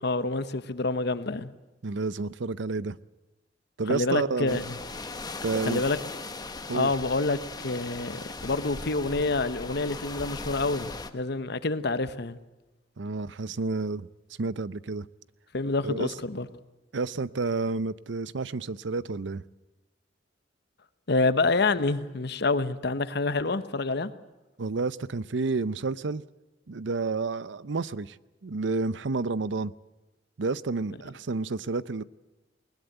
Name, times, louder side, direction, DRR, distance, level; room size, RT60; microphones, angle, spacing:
voice 1, 0.0-1.5 3.9-4.8 5.6-6.0 6.7-12.4 15.5-16.5 21.1-24.1, left 3 dB, 60° left, 1.1 m, -27 dB
voice 2, 1.8-3.0 3.8-4.6 5.4-5.8 6.7-6.9 13.0-14.1 14.4-15.1 15.8-16.1 16.9-19.4 24.6-26.2 26.7-28.2 28.4-29.7 30.4-32.0, right 3 dB, 75° right, 0.6 m, -30 dB
sound 1, 4.5-11.1, left 3 dB, 20° left, 1.2 m, -38 dB
20.5 x 20.0 x 8.1 m
head